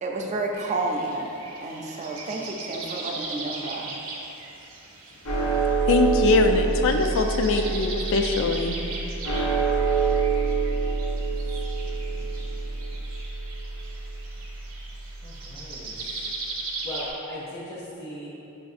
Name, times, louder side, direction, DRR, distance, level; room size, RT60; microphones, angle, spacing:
voice 1, 0.0-1.3 1.6-3.9, right 2 dB, 35° right, 0 dB, 0.4 m, -30 dB
sound 1, 0.5-17.1, right 3 dB, 65° right, 0.7 m, -39 dB
sound 2, 5.2-15.7, right 4 dB, 80° left, 0.7 m, -27 dB
voice 2, 5.9-8.7, left 4 dB, 60° left, 4 dB, 0.3 m, -22 dB
voice 3, 15.2-15.9 16.8-18.3, left 1 dB, 40° left, -10 dB, 0.8 m, -37 dB
5.9 x 2.6 x 2.4 m, 2.9 s
head